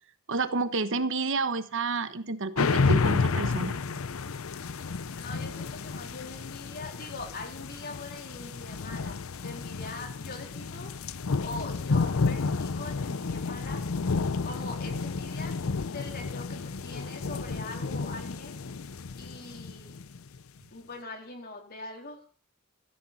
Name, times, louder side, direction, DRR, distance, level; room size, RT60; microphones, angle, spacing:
voice 1, 0.3-3.8, right 3 dB, 65° right, 12 dB, 1.2 m, -30 dB
sound 1, 2.6-20.4, left 4 dB, 75° left, 0.6 m, -31 dB
voice 2, 4.7-10.9 11.4-13.8 14.4-15.6 15.8-18.6 19.2-20.0 20.7-22.2, left 3 dB, 45° left, 3 dB, 3.7 m, -42 dB
15.5 x 14.0 x 4.2 m, 0.40 s
head